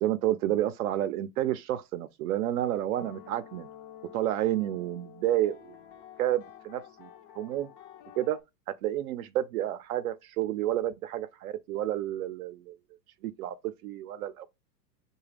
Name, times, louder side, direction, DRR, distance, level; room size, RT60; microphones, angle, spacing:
voice 1, 0.0-3.7 4.1-5.8 6.2-7.1 7.4-7.7 8.2-8.4 8.7-12.7 13.2-13.6 13.8-14.5, right 13 dB, 60° right, 0.5 m, -30 dB
sound 1, 2.9-8.4, left 10 dB, 35° left, 0.4 m, -50 dB
4.8 x 2.3 x 3.3 m
hypercardioid pair, 110°, 50 cm